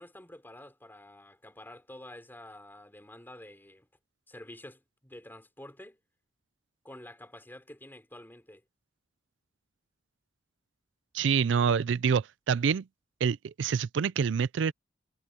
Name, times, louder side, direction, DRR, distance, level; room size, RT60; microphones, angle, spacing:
voice 1, 0.0-3.9 4.3-6.0 6.8-8.6, left 1 dB, 10° left, 4.3 m, -49 dB
voice 2, 11.1-12.9 13.2-14.7, right 6 dB, 70° right, 0.4 m, -26 dB
head